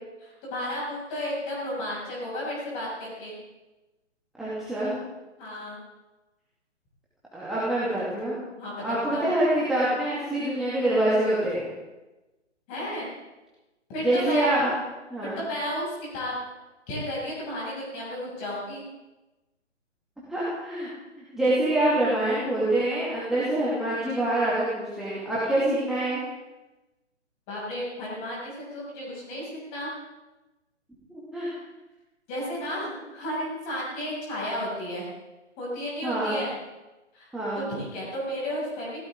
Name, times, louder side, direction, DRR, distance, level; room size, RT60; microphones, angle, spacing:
voice 1, 0.2-3.3 5.4-5.8 8.6-9.3 12.7-13.1 13.9-14.5 15.4-16.3 16.9-18.8 27.5-29.9 31.4-31.6 32.3-35.1 35.6-36.5 37.1-37.3 37.6-39.0, left 1 dB, 20° left, -5 dB, 6.7 m, -33 dB
voice 2, 4.4-4.9 7.3-8.3 8.8-11.7 14.0-14.7 15.1-15.4 20.3-20.9 21.3-26.2 31.3-31.5 36.0-36.4 37.3-37.7, right 1 dB, ahead, -9 dB, 2.5 m, -25 dB
20.5 x 17.0 x 3.8 m, 1.1 s
figure-of-eight pair, 140°, 36 cm